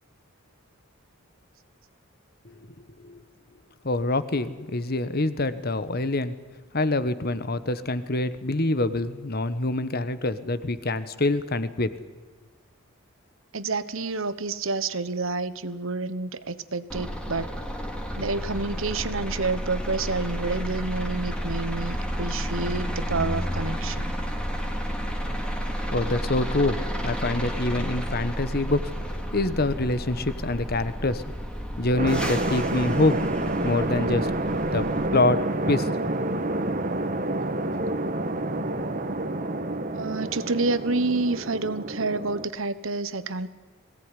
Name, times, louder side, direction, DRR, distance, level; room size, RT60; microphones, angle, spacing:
voice 1, 3.8-6.3 6.7-11.9 25.9-28.9 29.3-31.3 31.8-33.3 33.6-34.3 34.7-34.8 35.1-35.9, left 2 dB, 45° left, 14 dB, 1.2 m, -25 dB
voice 2, 13.5-17.5 18.2-24.1 39.9-43.5, right 3 dB, 65° right, 13 dB, 1.2 m, -29 dB
sound 1, 16.9-35.1, equal, 5° left, 2.4 m, -31 dB
sound 2, 32.0-42.4, right 2 dB, 40° right, 1.6 m, -28 dB
21.5 x 17.5 x 9.9 m, 1.4 s
head